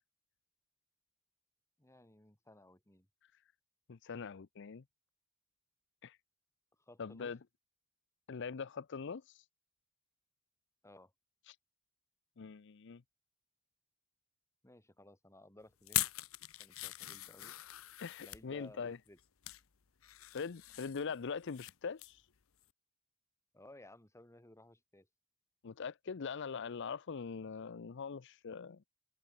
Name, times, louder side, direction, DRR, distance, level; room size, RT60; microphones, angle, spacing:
voice 1, 1.8-3.1 6.9-7.3 10.8-11.1 14.6-16.0 16.6-17.6 18.2-19.2 23.5-25.1, left 1 dB, 15° left, 2.9 m, -58 dB
voice 2, 3.9-4.8 6.0-6.2 7.0-7.4 8.3-9.4 11.5-11.6 12.4-13.0 18.0-19.0 20.3-22.3 25.6-28.8, left 5 dB, 60° left, 0.6 m, -42 dB
sound 1, 15.8-18.4 19.1-19.6 20.0-21.7 22.0-22.2 22.6-22.7, left 15 dB, 80° left, 0.9 m, -41 dB
head